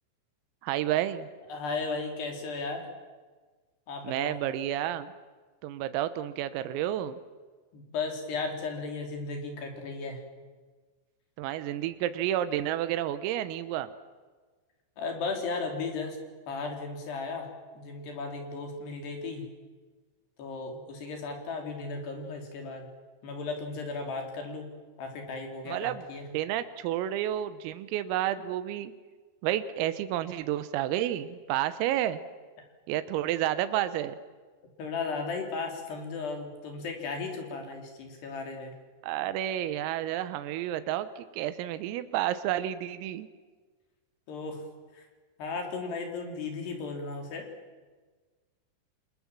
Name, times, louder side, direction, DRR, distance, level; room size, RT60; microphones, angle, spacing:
voice 1, 0.6-1.3 4.1-5.1 5.6-7.2 11.4-13.9 25.7-26.0 26.3-28.9 29.4-32.2 32.9-34.2 39.0-43.3, right 12 dB, 85° right, 12 dB, 3.8 m, -30 dB
voice 2, 1.5-2.9 3.9-4.4 7.7-10.2 15.0-16.2 16.5-17.5 17.7-19.4 20.4-22.9 23.2-24.7 25.0-26.2 34.8-38.8 44.3-44.6 44.9-45.1 45.4-47.5, left 4 dB, 55° left, 3 dB, 5.3 m, -35 dB
28.5 x 26.0 x 7.5 m, 1.4 s
omnidirectional pair, 5.9 m